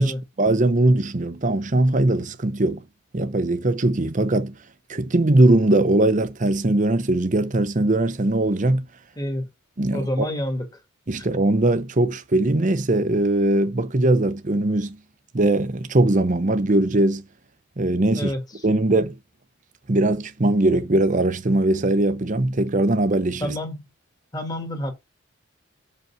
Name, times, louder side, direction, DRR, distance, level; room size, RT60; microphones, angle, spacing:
voice 1, 0.0-2.8 3.1-4.5 4.9-8.8 9.8-10.3 11.1-15.0 15.3-17.2 17.8-18.3 18.6-19.1 19.9-23.5, right 2 dB, 40° right, 0.7 m, -20 dB
voice 2, 9.2-9.5 9.9-10.7 11.2-11.3 18.1-18.4 23.4-23.8 24.3-24.9, equal, 20° left, 1.7 m, -28 dB
6.1 x 5.3 x 5.7 m
head